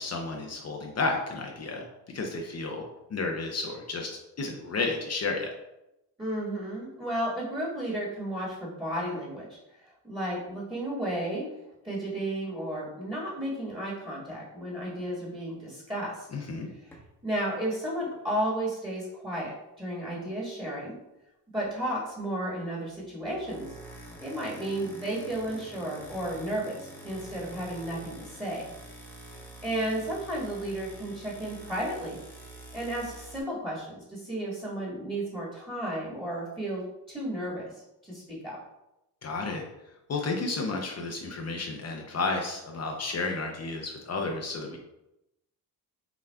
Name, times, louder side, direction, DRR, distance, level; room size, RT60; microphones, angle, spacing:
voice 1, 0.0-2.8 3.1-5.5 16.3-16.7 39.2-39.6 40.1-44.8, left 3 dB, 40° left, 1 dB, 0.6 m, -32 dB
voice 2, 6.2-9.5 10.0-11.5 11.8-16.3 16.7-16.9 17.2-21.0 21.5-23.7 24.2-28.6 29.6-32.2 32.7-38.6, right 1 dB, 10° right, -6 dB, 1.5 m, -33 dB
sound 1, 16.9-17.1 23.2-33.4, right 1 dB, 5° left, 0.9 m, -46 dB
5.6 x 2.3 x 2.2 m, 0.91 s
cardioid pair, 70°, 42 cm